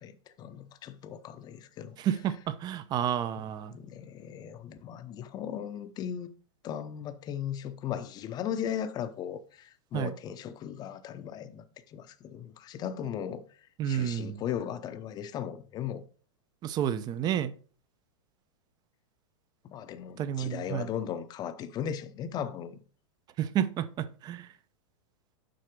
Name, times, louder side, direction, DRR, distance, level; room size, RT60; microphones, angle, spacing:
voice 1, 0.0-1.9 3.4-6.3 6.6-13.4 13.8-16.0 19.6-22.8, left 9 dB, 25° left, 0.8 m, -37 dB
voice 2, 2.0-3.7 9.9-10.1 13.8-14.4 16.6-17.5 20.2-20.9 23.4-24.5, right 10 dB, 25° right, 0.6 m, -30 dB
7.7 x 5.7 x 5.2 m
supercardioid pair, 145°, 17 cm